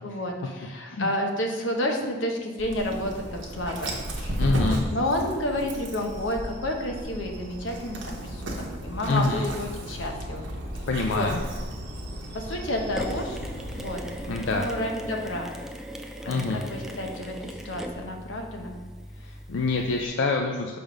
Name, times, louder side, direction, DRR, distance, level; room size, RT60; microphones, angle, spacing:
voice 1, 0.0-10.5 11.0-11.3 12.3-13.4 13.7-14.0 14.4-15.5 16.2-18.7, left 1 dB, 85° left, 2 dB, 0.9 m, -30 dB
Dog, 2.6-14.6, equal, 75° right, 1.0 m, -34 dB
voice 2, 4.4-4.8 9.1-9.5 10.9-11.4 14.3-14.6 16.3-16.6 19.2-20.8, left 3 dB, 65° left, 2 dB, 0.4 m, -26 dB
Mechanisms, 13.0-20.1, equal, ahead, 0.3 m, -39 dB
6.1 x 3.5 x 5.0 m, 1.4 s
head